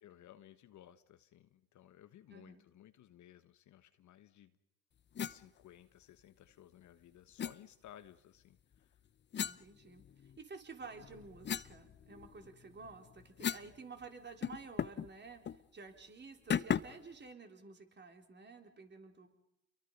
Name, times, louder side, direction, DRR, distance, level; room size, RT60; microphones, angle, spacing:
voice 1, 0.0-4.6 5.2-9.0, left 11 dB, 50° left, 11 dB, 1.2 m, -58 dB
voice 2, 2.3-2.6 9.4-15.4 15.7-19.3, right 4 dB, 30° right, 4 dB, 3.9 m, -52 dB
sound 1, 5.2-5.4 7.4-7.6 9.3-10.4 10.9-13.8 14.0-14.1 14.4-15.1 15.4-15.6 16.5-17.1, left 8 dB, 30° left, 0.8 m, -38 dB
29.5 x 23.0 x 5.5 m, 0.88 s
hypercardioid pair, 75°, 37 cm